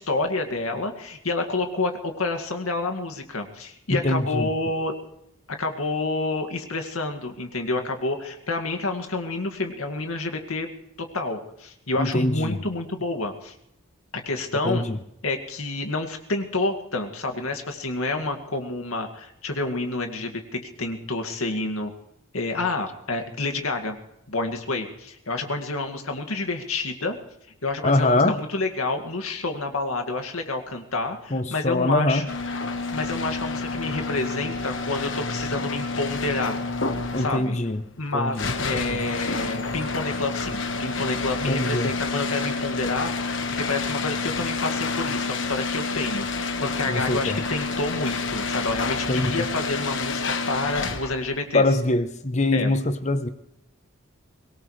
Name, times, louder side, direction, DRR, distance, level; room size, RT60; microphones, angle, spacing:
voice 1, 0.0-4.9 5.5-10.7 11.1-13.5 14.1-14.8 15.2-21.9 22.3-24.0 24.3-27.2 27.6-32.2 32.9-36.6 37.2-37.6 38.0-51.6 52.5-52.7, left 2 dB, 85° left, 2.2 m, -29 dB
voice 2, 3.9-4.5 12.0-12.6 14.6-15.0 27.8-28.4 31.3-32.3 37.1-37.8 38.1-39.0 41.5-41.9 46.9-47.4 49.1-49.5 51.5-53.3, left 2 dB, 35° left, 0.9 m, -23 dB
sound 1, 32.3-51.3, left 3 dB, 60° left, 1.4 m, -29 dB
24.0 x 18.5 x 3.3 m
head